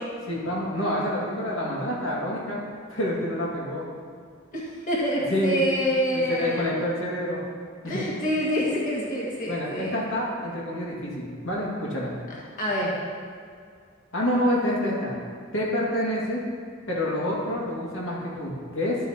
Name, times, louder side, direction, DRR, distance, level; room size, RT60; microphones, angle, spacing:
voice 1, 0.2-2.6 2.9-3.8 5.3-5.6 6.1-7.4 7.8-8.1 9.5-12.1 14.1-15.2 15.5-16.4 16.9-19.0, left 1 dB, 85° left, -5 dB, 2.1 m, -27 dB
voice 2, 4.9-6.6 7.9-9.9 12.6-12.9, equal, 45° left, -6 dB, 1.9 m, -26 dB
12.0 x 8.6 x 2.9 m, 2.2 s
head